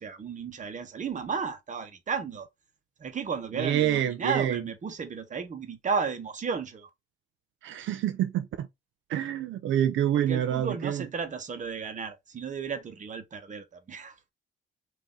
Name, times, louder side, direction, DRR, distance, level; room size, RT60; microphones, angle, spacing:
voice 1, 0.0-2.5 3.0-6.9 10.1-14.2, right 5 dB, 40° right, 1.1 m, -33 dB
voice 2, 3.6-4.6 7.6-8.7 9.1-11.0, right 11 dB, 75° right, 0.5 m, -27 dB
3.6 x 2.8 x 3.8 m
cardioid pair, 90°, 20 cm